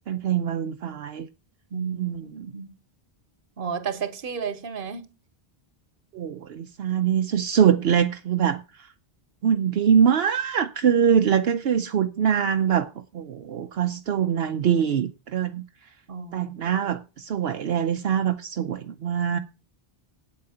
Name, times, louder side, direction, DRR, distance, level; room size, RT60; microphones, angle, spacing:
voice 1, 0.1-1.3 1.9-2.5 6.1-8.9 9.4-15.6 16.3-19.4, right 8 dB, 75° right, 0.9 m, -23 dB
voice 2, 1.7-2.7 3.6-5.1 16.1-16.8, right 6 dB, 60° right, 1.2 m, -32 dB
8.6 x 8.5 x 5.6 m
omnidirectional pair, 1.0 m